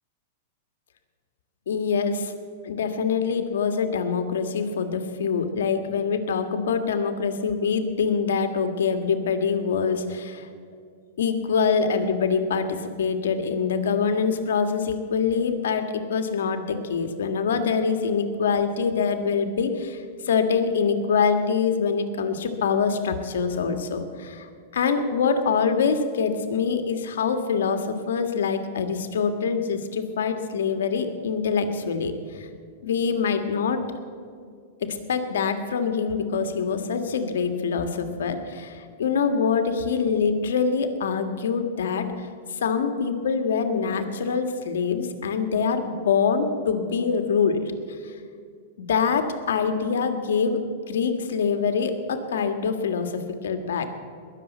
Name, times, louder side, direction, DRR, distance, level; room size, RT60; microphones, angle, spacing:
voice 1, 1.7-2.3 2.6-10.5 11.2-32.5 32.8-33.8 34.8-42.3 42.6-47.6 48.0-48.1 48.9-53.9, left 5 dB, 85° left, 7 dB, 1.7 m, -25 dB
20.0 x 7.0 x 9.1 m, 2.2 s
hypercardioid pair, 145°, 0 cm